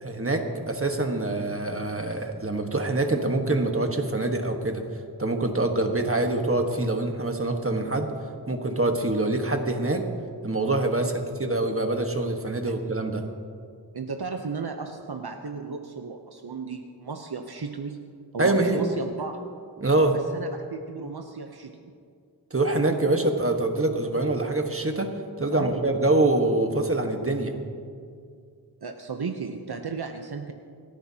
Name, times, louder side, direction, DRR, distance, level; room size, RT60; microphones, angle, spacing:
voice 1, 0.0-4.8 5.2-8.1 8.5-10.0 10.4-13.2 18.4-18.8 19.8-20.2 22.5-25.1 25.4-27.5, right 2 dB, 30° right, 4 dB, 1.4 m, -25 dB
voice 2, 13.9-18.0 18.3-19.4 20.3-21.8 25.5-25.7 28.8-30.5, right 5 dB, 65° right, 5 dB, 0.8 m, -35 dB
29.0 x 10.5 x 2.8 m, 2.3 s
wide cardioid pair, 45°, 41 cm